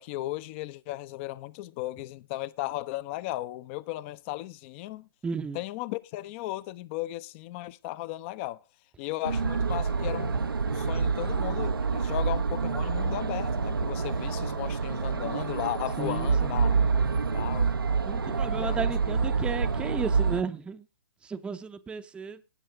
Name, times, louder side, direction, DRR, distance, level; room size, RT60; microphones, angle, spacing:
voice 1, 0.0-5.1 5.5-8.6 9.0-16.8 17.1-17.7 18.5-18.8, left 16 dB, 35° left, 0.7 m, -36 dB
voice 2, 5.2-5.6 16.0-16.6 18.1-20.8 21.2-22.4, right 5 dB, 10° right, 0.7 m, -34 dB
sound 1, 9.2-20.4, right 5 dB, 90° right, 0.9 m, -27 dB
18.5 x 6.4 x 3.4 m
hypercardioid pair, 130°, 12 cm